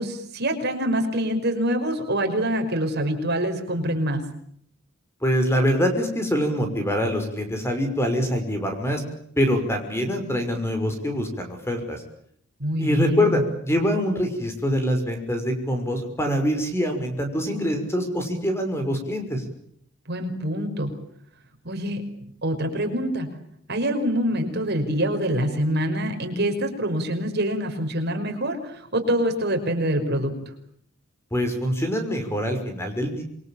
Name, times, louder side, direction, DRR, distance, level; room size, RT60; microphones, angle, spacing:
voice 1, 0.0-4.2 12.6-13.4 20.1-20.9 21.6-22.0 22.4-23.3 23.7-30.3, equal, 50° right, 5 dB, 5.6 m, -25 dB
voice 2, 5.2-9.0 9.4-12.0 12.8-19.4 31.3-33.2, equal, 10° left, 6 dB, 5.9 m, -24 dB
28.0 x 23.0 x 8.9 m, 0.67 s
head